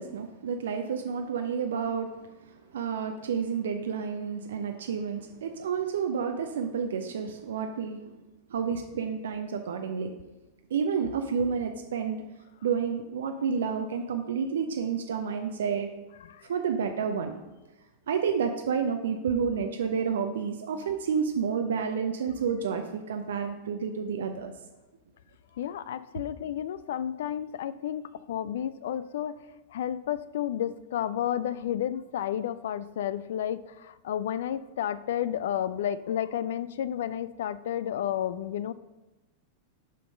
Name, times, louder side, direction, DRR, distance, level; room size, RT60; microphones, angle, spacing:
voice 1, 0.0-2.1 2.7-8.0 8.5-10.1 10.7-12.2 12.6-15.9 16.5-17.3 18.1-24.5, right 6 dB, 65° right, 5 dB, 0.5 m, -30 dB
voice 2, 25.6-38.7, left 10 dB, 60° left, 16 dB, 0.3 m, -32 dB
5.6 x 5.3 x 5.2 m, 1.1 s
figure-of-eight pair, 90°, 0 cm